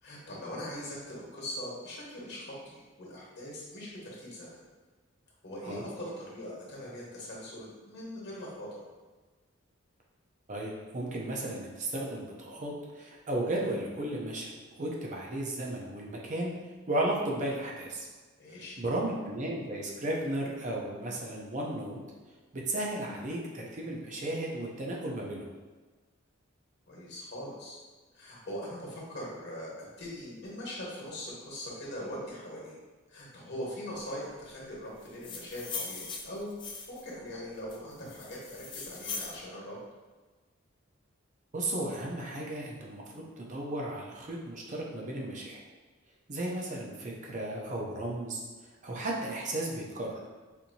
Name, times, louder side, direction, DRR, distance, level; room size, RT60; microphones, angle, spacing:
voice 1, 0.0-4.6 5.4-8.7 18.4-18.8 26.9-27.8 28.1-32.8 33.1-36.5 36.9-39.8, equal, 55° left, -5 dB, 1.2 m, -41 dB
voice 2, 10.5-14.5 14.8-16.5 16.9-18.1 18.8-22.0 22.5-25.5 41.5-45.6 46.3-48.4 48.8-50.2, right 1 dB, 35° right, -2 dB, 0.5 m, -34 dB
sound 1, 35.0-37.1 37.7-39.4, left 4 dB, 25° left, 0.4 m, -40 dB
4.3 x 2.7 x 2.7 m, 1.3 s
head